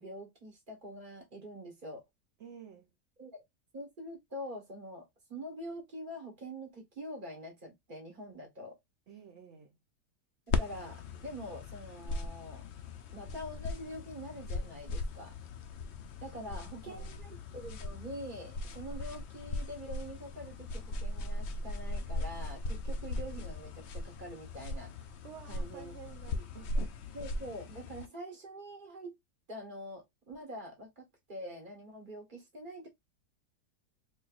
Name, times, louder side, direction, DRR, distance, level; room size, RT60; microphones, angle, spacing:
voice 1, 0.0-2.0 3.2-3.3 3.7-8.8 10.5-12.6 13.1-15.4 16.2-25.1 25.5-25.9 26.3-26.4 26.7-26.9 27.1-29.1 29.5-32.9, equal, 30° right, 1.4 m, -45 dB
voice 2, 2.4-2.9 9.1-9.8 16.4-17.2 25.2-26.8, right 8 dB, 55° right, 0.9 m, -52 dB
sound 1, 10.5-28.1, left 2 dB, 70° left, 0.6 m, -38 dB
4.3 x 2.6 x 2.4 m
omnidirectional pair, 1.7 m